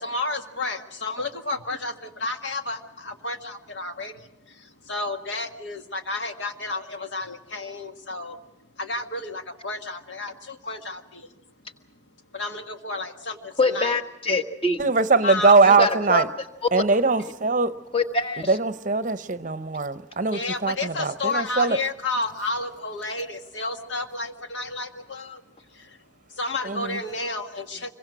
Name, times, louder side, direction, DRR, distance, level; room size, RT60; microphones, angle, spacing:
voice 1, 0.0-8.4 8.8-11.3 12.3-14.0 15.2-15.6 20.3-25.4 25.7-26.0 26.3-27.9, left 3 dB, 70° left, 6 dB, 1.7 m, -31 dB
voice 2, 13.6-14.8 15.6-16.2 16.7-16.8 17.2-17.3 17.9-18.6, left 2 dB, 30° left, 7 dB, 1.4 m, -24 dB
voice 3, 14.8-16.3 16.7-17.8 18.5-21.8 26.6-27.0, right 4 dB, 40° right, 13 dB, 0.7 m, -21 dB
25.5 x 23.0 x 6.1 m, 0.91 s
head